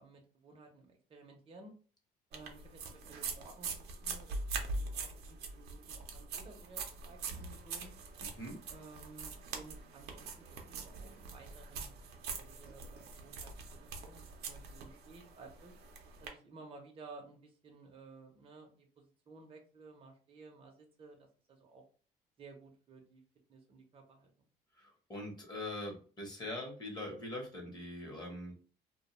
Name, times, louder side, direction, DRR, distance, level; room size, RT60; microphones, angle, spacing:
voice 1, 0.0-1.7 2.3-3.7 4.0-7.9 8.7-11.9 12.4-15.8 16.2-21.8 22.4-23.2 23.5-24.3, right 3 dB, 35° right, 2 dB, 0.6 m, -55 dB
sound 1, 2.3-16.3, right 4 dB, 75° right, 0.6 m, -43 dB
voice 2, 8.2-8.6 24.8-28.6, left 1 dB, 25° left, 0 dB, 0.9 m, -43 dB
2.2 x 2.2 x 3.0 m, 0.39 s
cardioid pair, 110°, 17 cm